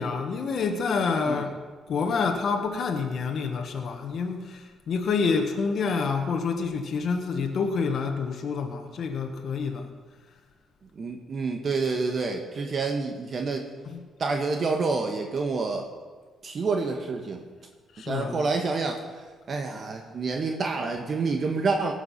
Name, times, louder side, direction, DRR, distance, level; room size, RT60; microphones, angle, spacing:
voice 1, 0.0-1.5 1.9-9.9 13.9-14.0 17.9-18.4, left 5 dB, 60° left, 4 dB, 1.4 m, -28 dB
voice 2, 11.0-13.7 14.2-15.9 16.4-17.4 18.1-19.0 19.5-21.9, right 4 dB, 45° right, 3 dB, 1.3 m, -28 dB
18.0 x 7.0 x 5.7 m, 1.4 s
cardioid pair, 90°, 0 cm